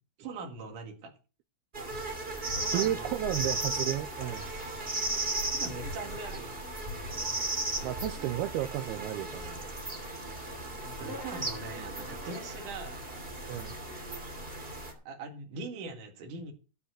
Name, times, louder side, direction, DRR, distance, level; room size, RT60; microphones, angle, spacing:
voice 1, 0.2-1.1 2.6-3.2 5.5-6.7 10.8-13.0 14.9-16.5, right 3 dB, 55° right, 3.3 m, -42 dB
sound 1, 1.7-14.9, right 2 dB, 20° right, 2.2 m, -36 dB
voice 2, 2.7-4.5 7.8-9.6 13.5-13.8, right 13 dB, 80° right, 2.7 m, -33 dB
13.0 x 5.5 x 8.0 m
omnidirectional pair, 4.7 m